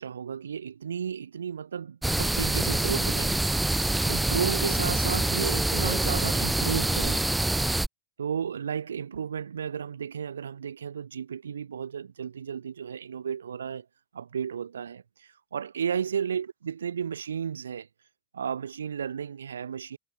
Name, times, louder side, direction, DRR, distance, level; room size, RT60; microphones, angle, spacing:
voice 1, 0.0-3.4 4.0-7.3 8.2-13.8 14.1-15.0 15.5-17.9 18.3-20.0, right 7 dB, 80° right, 0.6 m, -33 dB
sound 1, 2.0-7.9, right 2 dB, 5° right, 1.4 m, -26 dB
hypercardioid pair, 90°, 0 cm